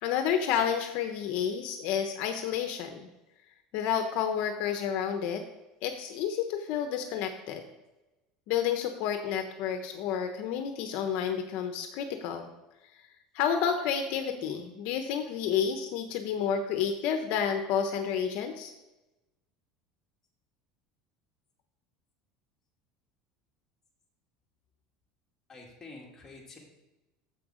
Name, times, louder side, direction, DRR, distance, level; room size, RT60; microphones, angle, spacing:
voice 1, 0.0-3.1 3.7-5.4 5.8-7.6 8.5-12.5 13.3-18.7, left 8 dB, 65° left, 6 dB, 0.9 m, -30 dB
voice 2, 25.5-26.6, left 3 dB, 15° left, -2 dB, 2.3 m, -48 dB
7.7 x 7.2 x 5.0 m, 1.0 s
cardioid pair, 140°, 3 cm